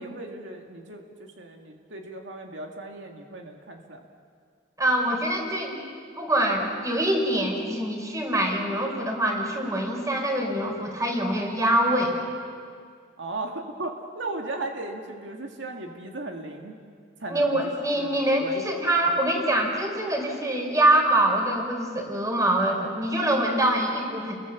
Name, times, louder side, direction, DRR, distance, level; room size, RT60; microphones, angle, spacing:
voice 1, 0.0-4.1 13.2-16.8 17.2-17.7 18.0-18.7, right 2 dB, 85° right, 2 dB, 2.1 m, -36 dB
voice 2, 4.8-5.8 6.2-12.2 17.3-24.3, right 1 dB, 20° right, 2 dB, 4.1 m, -24 dB
30.0 x 22.0 x 7.3 m, 2.1 s
head